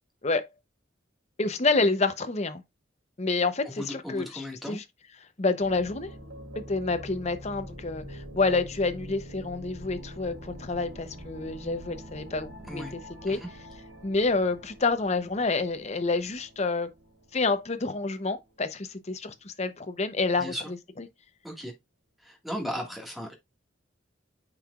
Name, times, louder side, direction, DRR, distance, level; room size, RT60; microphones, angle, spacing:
voice 1, 1.4-2.6 3.2-4.8 5.4-6.1 6.5-13.4 14.0-16.9 17.3-20.5 21.0-21.1, left 3 dB, 35° left, 0.8 m, -28 dB
voice 2, 3.7-4.8 12.7-12.9 13.3-13.5 20.4-20.7 21.4-21.7 22.2-23.3, equal, ahead, 1.8 m, -36 dB
sound 1, 5.6-18.3, equal, 85° right, 3.3 m, -44 dB
8.7 x 4.7 x 2.4 m
head